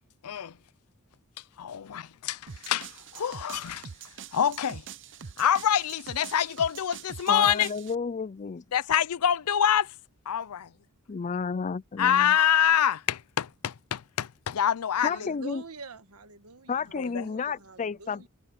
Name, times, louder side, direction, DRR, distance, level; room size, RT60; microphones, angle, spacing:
voice 1, 0.2-0.6 1.4-3.9 4.3-4.9 5.4-7.7 8.7-9.9 10.3-10.7 12.0-15.3 16.9-17.3, left 9 dB, 80° left, 0.5 m, -26 dB
sound 1, 2.5-7.9, right 7 dB, 55° right, 0.7 m, -44 dB
voice 2, 7.3-8.6 11.1-12.3 15.0-15.6 16.7-18.3, left 5 dB, 35° left, 0.4 m, -31 dB
voice 3, 15.0-18.3, right 4 dB, 80° right, 1.5 m, -46 dB
head